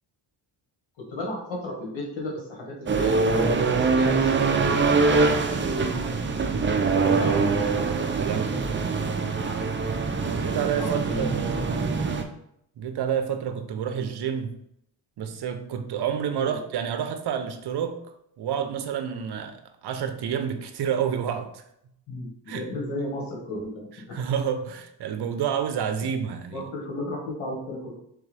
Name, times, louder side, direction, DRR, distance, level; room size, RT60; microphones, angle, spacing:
voice 1, 1.1-6.3 7.1-8.6 9.4-9.7 10.8-11.9 16.4-16.6 22.1-23.9 25.9-26.1 26.5-28.0, left 1 dB, 80° left, 1.6 m, -35 dB
sound 1, 2.9-12.2, right 4 dB, 25° right, 0.4 m, -24 dB
voice 2, 6.5-8.6 10.3-11.6 12.8-14.5 15.2-18.0 18.4-21.6 22.5-22.7 24.1-26.6, right 8 dB, 60° right, 0.7 m, -29 dB
3.5 x 3.5 x 3.3 m
cardioid pair, 80°, 45 cm